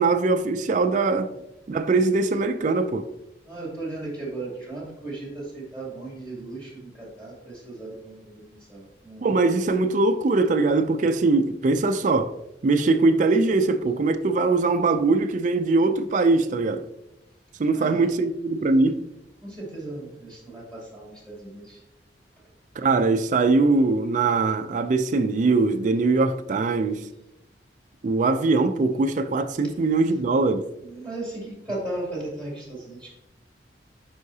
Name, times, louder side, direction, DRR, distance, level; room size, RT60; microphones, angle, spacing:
voice 1, 0.0-1.3 1.7-3.1 9.2-12.3 12.6-16.8 17.6-19.0 22.8-27.1 28.0-30.6, right 3 dB, 45° right, 0.4 m, -21 dB
voice 2, 3.4-9.2 17.7-18.0 19.4-21.8 30.8-33.1, right 2 dB, 5° left, 2.6 m, -36 dB
9.4 x 5.6 x 2.8 m
head